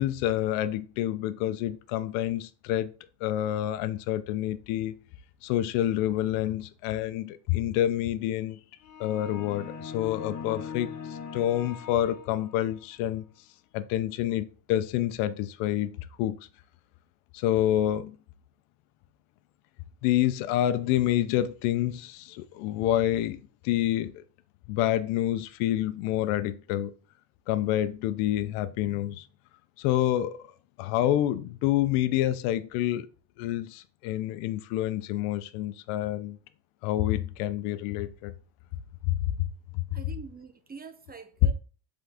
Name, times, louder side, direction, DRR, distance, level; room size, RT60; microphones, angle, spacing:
voice 1, 0.0-2.9 3.2-5.0 5.4-8.6 9.0-10.9 11.3-13.2 13.7-16.4 17.3-18.2 20.0-24.2 24.7-26.9 27.5-29.2 29.8-30.4 30.8-33.1 33.4-36.4 36.8-38.3 39.1-39.3 39.7-40.0, left 13 dB, 75° left, 0.8 m, -28 dB
sound 1, 8.8-12.8, left 7 dB, 35° left, 1.4 m, -40 dB
voice 2, 39.9-41.5, right 4 dB, 20° right, 0.7 m, -45 dB
7.6 x 3.9 x 3.5 m
cardioid pair, 115°, 50 cm